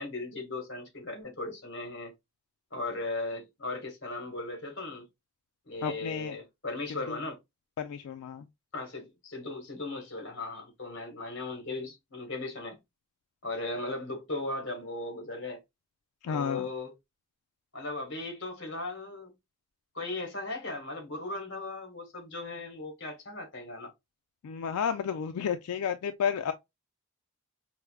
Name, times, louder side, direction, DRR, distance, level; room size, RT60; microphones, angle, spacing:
voice 1, 0.0-2.1 2.7-5.1 5.7-7.4 8.7-12.8 13.4-15.6 16.3-16.9 17.7-19.3 19.9-23.9, left 2 dB, 55° left, 1.1 m, -37 dB
voice 2, 5.8-6.4 7.1-7.2 7.8-8.5 16.2-16.7 24.4-26.5, left 7 dB, 90° left, 0.3 m, -31 dB
4.6 x 2.1 x 2.2 m
head